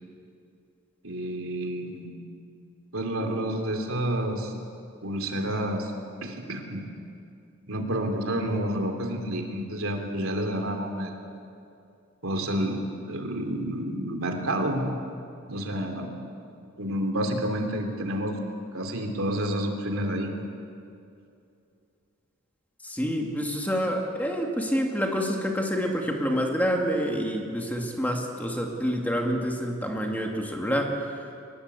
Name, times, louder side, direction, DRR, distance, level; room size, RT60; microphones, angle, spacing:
voice 1, 1.0-2.1 2.9-4.5 5.0-5.9 6.2-6.8 7.7-11.2 12.2-12.8 13.1-14.9 15.5-16.1 16.8-18.4 18.7-20.3, right 1 dB, 70° right, 4 dB, 3.2 m, -29 dB
voice 2, 22.8-31.2, equal, 10° left, 1 dB, 2.2 m, -27 dB
23.0 x 21.0 x 8.3 m, 2.6 s
head